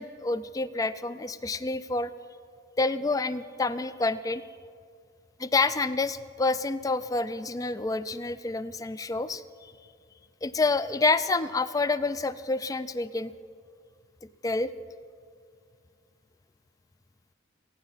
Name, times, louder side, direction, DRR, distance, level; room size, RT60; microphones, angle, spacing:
voice 1, 0.0-2.1 2.8-4.4 5.4-9.7 10.4-13.3 14.4-14.7, left 3 dB, 15° left, 15 dB, 0.3 m, -28 dB
29.5 x 9.8 x 4.1 m, 2.3 s
head